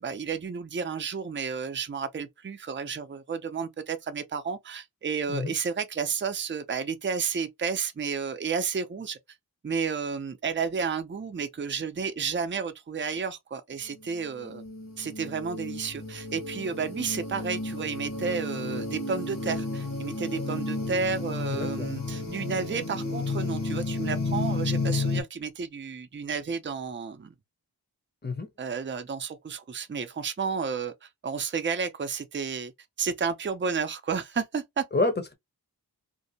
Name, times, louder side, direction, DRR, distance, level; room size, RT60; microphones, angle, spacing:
voice 1, 0.0-9.2 9.6-14.6 15.0-27.3 28.6-32.7 33.0-34.8, right 5 dB, 30° right, 0.4 m, -31 dB
sound 1, 14.1-25.2, left 3 dB, 60° left, 1.0 m, -32 dB
voice 2, 21.5-21.9 28.2-28.5 34.9-35.3, left 2 dB, 25° left, 0.7 m, -28 dB
2.6 x 2.0 x 2.7 m
wide cardioid pair, 50°, 39 cm